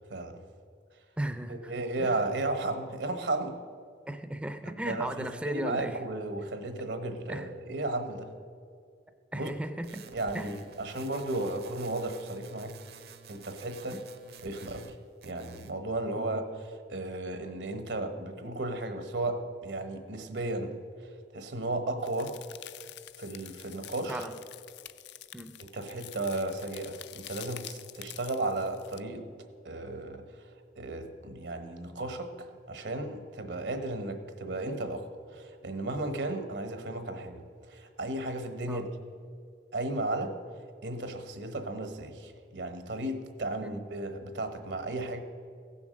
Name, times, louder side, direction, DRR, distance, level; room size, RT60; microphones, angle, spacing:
voice 1, 0.1-0.4 1.5-3.6 4.7-8.3 9.3-9.5 10.1-12.8 13.3-14.0 14.4-14.9 15.2-16.5 16.9-20.7 21.0-22.4 23.2-24.3 25.6-29.3 29.6-30.5 30.8-38.9 39.7-40.4 40.8-45.2, right 2 dB, 80° right, 8 dB, 1.1 m, -34 dB
voice 2, 1.2-1.7 2.0-2.2 4.1-6.0 7.3-7.5 9.3-10.0 10.3-10.5 13.9-14.0 16.2-16.3 24.1-24.4 25.3-25.6 38.7-38.8 43.6-43.7, right 1 dB, 5° right, 8 dB, 0.4 m, -36 dB
sound 1, 9.8-15.0 15.2-15.8, right 6 dB, 65° right, 0.7 m, -51 dB
sound 2, 22.0-29.0, left 13 dB, 75° left, 0.4 m, -47 dB
15.5 x 7.1 x 6.4 m, 2.2 s
head